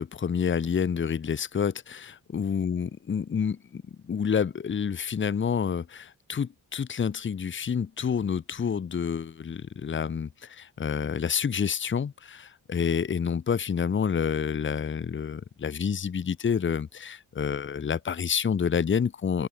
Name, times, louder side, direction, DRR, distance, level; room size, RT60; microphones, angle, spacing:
voice 1, 0.0-19.5, left 7 dB, 35° left, 1.2 m, -28 dB
open air
wide cardioid pair, 135°, 33 cm